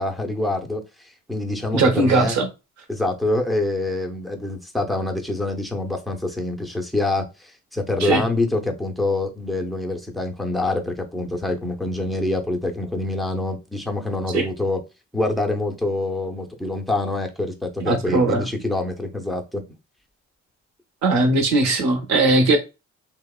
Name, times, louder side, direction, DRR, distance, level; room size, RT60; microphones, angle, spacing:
voice 1, 0.0-2.3 2.9-14.8 15.1-19.6, left 2 dB, ahead, 0.5 m, -26 dB
voice 2, 1.7-2.5 8.0-8.3 14.3-14.5 17.8-18.5 21.0-22.6, right 2 dB, 65° right, 0.8 m, -19 dB
2.8 x 2.1 x 2.2 m
cardioid pair, 90°, 30 cm